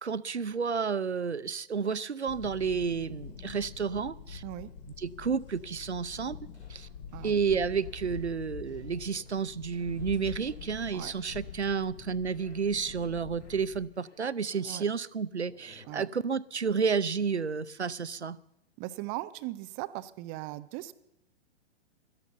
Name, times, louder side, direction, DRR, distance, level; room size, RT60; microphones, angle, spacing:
voice 1, 0.0-4.4 5.0-6.4 6.7-6.9 7.2-18.4, right 6 dB, 85° right, 18 dB, 0.7 m, -31 dB
sound 1, 2.3-13.8, left 7 dB, 50° left, 2.5 m, -45 dB
sound 2, 5.5-11.9 12.2-13.1 13.4-15.0 15.4-16.1 17.2-17.4, left 2 dB, 90° left, 3.6 m, -61 dB
voice 2, 18.8-20.9, right 17 dB, 20° right, 15 dB, 0.5 m, -38 dB
16.5 x 12.5 x 6.8 m, 0.84 s
figure-of-eight pair, 115°, 33 cm